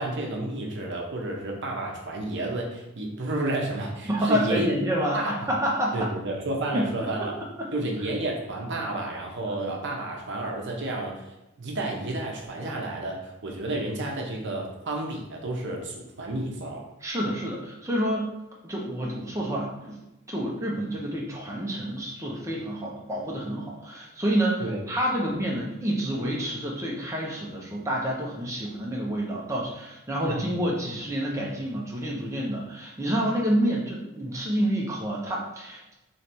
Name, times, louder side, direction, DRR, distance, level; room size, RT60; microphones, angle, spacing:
voice 1, 0.0-4.7 5.1-5.4 5.9-7.3 7.7-11.2 11.6-16.8 24.6-24.8 25.2-25.3 30.2-30.5, right 2 dB, 55° right, 0 dB, 0.8 m, -31 dB
voice 2, 4.0-6.1 6.7-6.9 7.6-7.7 9.5-9.6 17.0-18.3 18.6-20.0 20.3-35.9, equal, 15° right, -3 dB, 0.7 m, -28 dB
3.2 x 3.1 x 4.3 m, 0.95 s
head